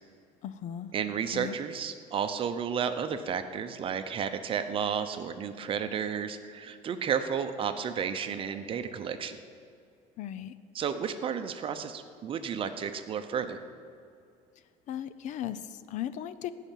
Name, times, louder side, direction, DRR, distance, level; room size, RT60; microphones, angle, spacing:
voice 1, 0.4-0.9 1.3-1.5 10.2-10.5 14.9-16.5, left 11 dB, 55° left, 14 dB, 0.6 m, -37 dB
voice 2, 0.9-9.4 10.7-13.6, right 7 dB, 35° right, 9 dB, 0.8 m, -32 dB
15.5 x 5.8 x 9.2 m, 2.5 s
cardioid pair, 145°, 15 cm